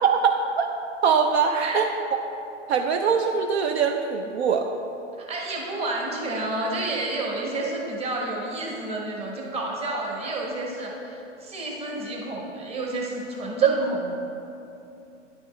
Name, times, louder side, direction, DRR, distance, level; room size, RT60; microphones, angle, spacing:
voice 1, 0.0-0.7 1.0-1.9 2.7-4.7, right 6 dB, 60° right, 5 dB, 0.5 m, -22 dB
voice 2, 5.2-14.1, right 2 dB, 15° right, -2 dB, 1.0 m, -30 dB
9.9 x 5.2 x 3.1 m, 2.8 s
hypercardioid pair, 130°, 38 cm